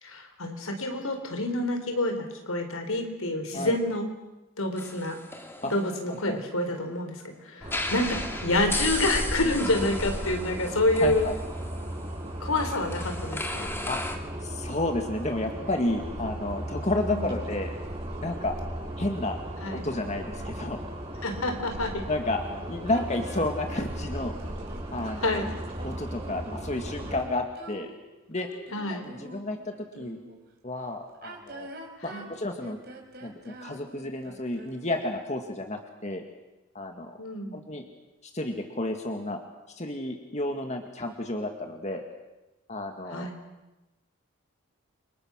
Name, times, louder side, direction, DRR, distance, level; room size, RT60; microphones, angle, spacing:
voice 1, 0.0-4.1 4.6-5.2 5.7-11.3 12.4-13.7 17.0-17.4 19.6-19.8 21.2-22.0 25.2-25.5 28.7-29.1 32.1-32.3 37.2-37.6 43.1-43.3, left 1 dB, 75° left, 6 dB, 4.4 m, -28 dB
sound 1, 4.8-6.8 7.6-14.2, left 2 dB, 10° left, 2.2 m, -36 dB
sound 2, 7.6-27.2, right 1 dB, 30° right, 6.4 m, -36 dB
voice 2, 11.0-11.3 13.9-14.0 14.4-17.7 18.2-18.5 19.0-19.4 19.7-20.8 22.1-22.4 22.7-24.4 24.9-25.4 25.8-27.9 28.3-28.5 28.9-30.2 30.6-31.7 32.0-32.8 33.2-36.2 36.7-37.2 37.5-37.8 38.2-39.4 39.8-42.0 42.7-43.3, left 2 dB, 30° left, 4 dB, 2.0 m, -31 dB
sound 3, 22.9-30.4 31.1-35.1, right 1 dB, 45° right, 4.7 m, -46 dB
29.5 x 26.0 x 6.5 m, 1.0 s
head